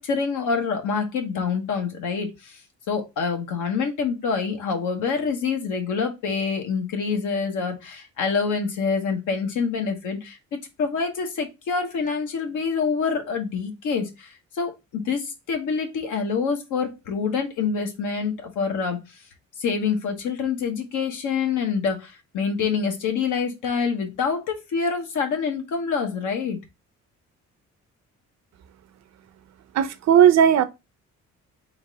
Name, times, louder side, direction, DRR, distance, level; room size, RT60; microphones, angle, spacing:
voice 1, 0.0-2.6 2.9-19.0 19.6-26.6, left 5 dB, 80° left, 1.2 m, -26 dB
voice 2, 29.7-30.6, right 9 dB, 60° right, 0.6 m, -16 dB
3.9 x 2.5 x 4.7 m
cardioid pair, 90°, 30 cm